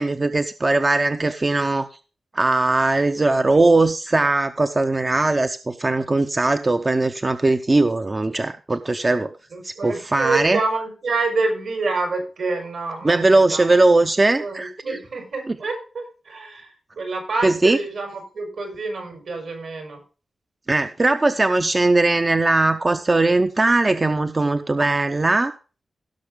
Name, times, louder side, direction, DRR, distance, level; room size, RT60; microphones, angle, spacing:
voice 1, 0.0-1.9 2.3-9.3 9.6-10.6 13.0-15.0 15.5-15.6 17.4-17.8 20.7-25.5, right 2 dB, 25° right, 9 dB, 0.6 m, -19 dB
voice 2, 9.5-13.7 14.4-20.0, right 3 dB, 75° right, 3 dB, 4.8 m, -27 dB
16.5 x 6.3 x 3.6 m, 0.35 s
wide cardioid pair, 135°, 0 cm